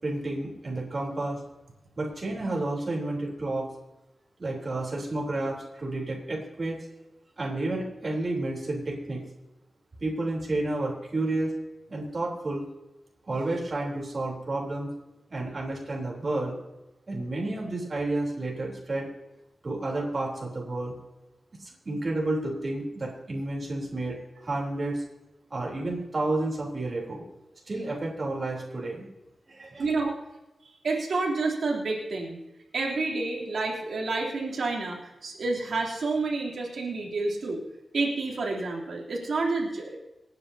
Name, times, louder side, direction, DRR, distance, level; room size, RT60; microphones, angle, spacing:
voice 1, 0.0-1.4 2.0-3.7 4.4-6.8 7.4-9.2 10.0-11.5 11.9-12.6 13.3-14.9 15.3-16.5 17.1-19.1 19.6-20.9 21.6-24.2 24.4-25.0 25.5-27.2 27.7-29.1 29.5-29.9, right 2 dB, 40° right, -3 dB, 3.5 m, -31 dB
voice 2, 29.8-30.2 30.8-32.4 32.7-37.6 37.9-40.0, right 3 dB, 80° right, -3 dB, 3.1 m, -29 dB
27.0 x 9.7 x 2.8 m, 1.0 s
wide cardioid pair, 140°, 0 cm